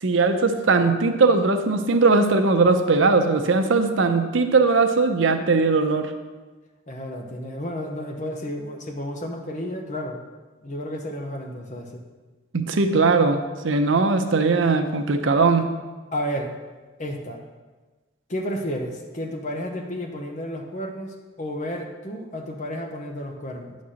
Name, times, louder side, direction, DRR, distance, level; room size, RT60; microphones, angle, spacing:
voice 1, 0.0-6.1 12.5-15.7, right 3 dB, 75° right, 7 dB, 0.7 m, -19 dB
voice 2, 6.9-10.2 10.6-12.0 16.1-16.5 17.0-17.4 18.3-23.8, equal, 40° left, 3 dB, 0.8 m, -32 dB
9.5 x 4.2 x 6.3 m, 1.3 s
head